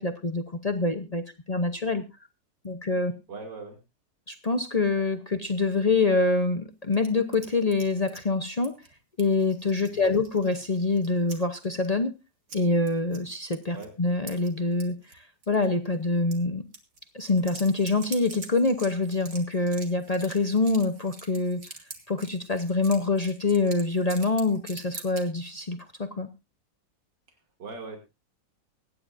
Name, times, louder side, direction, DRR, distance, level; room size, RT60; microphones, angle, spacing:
voice 1, 0.0-2.0 2.6-3.1 4.3-8.7 9.2-12.1 12.5-16.6 17.1-21.6 22.1-26.3, left 3 dB, 50° left, 6 dB, 0.4 m, -25 dB
voice 2, 3.3-3.8 9.9-10.1 13.7-13.9 27.3-28.0, right 3 dB, 75° right, 3 dB, 3.2 m, -41 dB
sound 1, 6.9-8.2 8.6-8.9 9.2-11.4 11.6-11.7 12.5-12.6 12.9-13.2 13.5-13.9 14.3-15.2 15.4-15.7 16.3-16.4 16.7-25.2, right 4 dB, 50° right, 2.4 m, -45 dB
24.0 x 9.7 x 2.6 m, 0.26 s
omnidirectional pair, 1.9 m